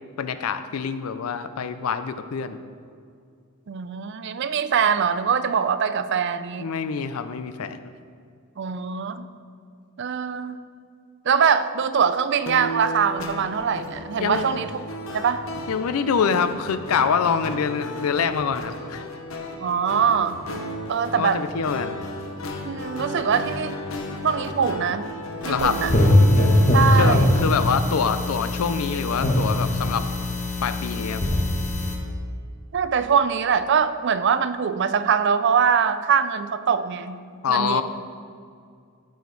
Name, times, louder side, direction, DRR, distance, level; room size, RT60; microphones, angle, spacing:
voice 1, 0.2-2.6 6.6-7.8 14.2-14.4 15.7-19.0 21.1-22.0 25.5-25.8 26.9-30.1 30.6-31.2 37.4-37.8, left 6 dB, 85° left, 11 dB, 0.4 m, -25 dB
voice 2, 3.7-6.7 8.6-9.3 10.0-10.6 11.3-14.7 15.1-15.5 19.6-20.4 20.9-21.4 22.6-23.8 24.2-25.1 25.4-25.9 26.7-27.4 32.7-37.2 37.5-37.8, right 6 dB, 55° right, 11 dB, 0.4 m, -23 dB
sound 1, 12.5-27.7, left 1 dB, 65° left, 0.9 m, -34 dB
sound 2, 25.6-31.9, left 1 dB, 30° left, 1.1 m, -21 dB
13.5 x 5.1 x 3.9 m, 2.3 s
head